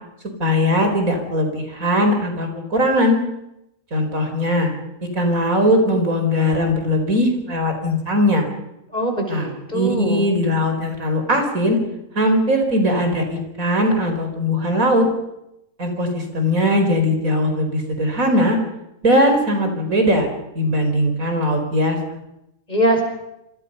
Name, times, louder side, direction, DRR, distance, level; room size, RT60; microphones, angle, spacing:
voice 1, 0.4-3.2 3.9-4.7 5.1-8.5 9.3-11.8 12.1-15.1 15.8-18.6 19.0-20.3 20.5-22.0, equal, 85° right, 5 dB, 5.1 m, -19 dB
voice 2, 8.9-10.3 22.7-23.0, right 1 dB, 30° left, 3 dB, 5.8 m, -22 dB
27.5 x 25.5 x 5.6 m, 0.85 s
omnidirectional pair, 1.4 m